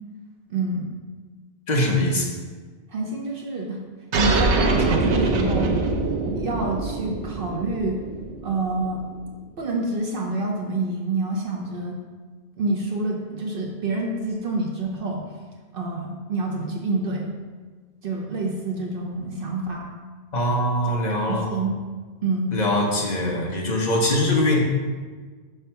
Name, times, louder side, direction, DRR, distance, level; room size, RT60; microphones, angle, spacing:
voice 1, 0.5-0.9 2.9-3.8 4.2-5.8 6.4-8.0 8.4-9.0 9.6-12.0 12.6-15.3 15.7-17.3 18.0-19.9 21.3-21.8 22.2-22.6, right 2 dB, 60° right, -1 dB, 0.9 m, -27 dB
voice 2, 1.7-2.3 20.3-21.5 22.5-24.6, left 1 dB, 40° left, -1 dB, 1.1 m, -22 dB
sound 1, 4.1-9.2, right 3 dB, 85° right, 1.0 m, -24 dB
5.6 x 3.5 x 5.6 m, 1.5 s
omnidirectional pair, 1.1 m